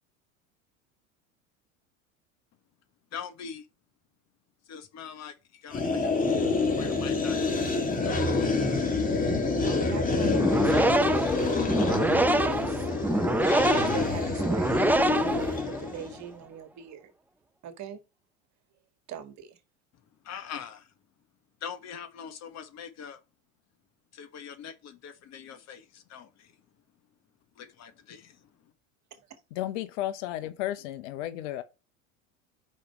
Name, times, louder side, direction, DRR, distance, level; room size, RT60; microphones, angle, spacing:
voice 1, 3.1-3.6 4.7-7.6 8.0-8.4 20.2-20.9 21.6-23.2 24.1-26.5 27.6-28.5, left 7 dB, 40° left, 1.5 m, -43 dB
sound 1, 5.7-16.2, left 3 dB, 20° left, 2.0 m, -27 dB
voice 2, 9.6-12.9 13.6-17.1 17.6-18.0 19.1-19.6 29.1-29.4, right 9 dB, 45° right, 1.8 m, -42 dB
sound 2, 10.3-16.0, right 2 dB, 5° right, 0.6 m, -26 dB
voice 3, 29.6-31.6, left 13 dB, 60° left, 1.0 m, -33 dB
5.6 x 5.0 x 4.6 m
hypercardioid pair, 85°, 40 cm